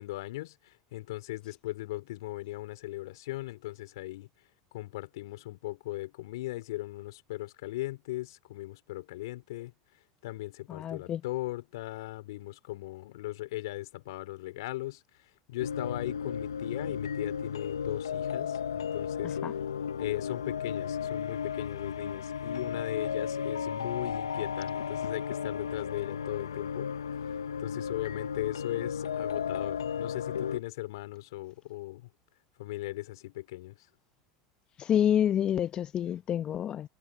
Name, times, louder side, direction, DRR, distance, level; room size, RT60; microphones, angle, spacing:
voice 1, 0.0-4.3 4.7-9.7 10.2-15.0 15.5-19.4 20.0-26.9 27.6-32.1 32.6-33.9, left 17 dB, 75° left, 4.2 m, -38 dB
voice 2, 10.7-11.2 19.4-19.5 34.8-36.9, left 10 dB, 40° left, 0.8 m, -28 dB
sound 1, 15.6-30.6, left 7 dB, 90° left, 0.9 m, -34 dB
hypercardioid pair, 85°, 2 cm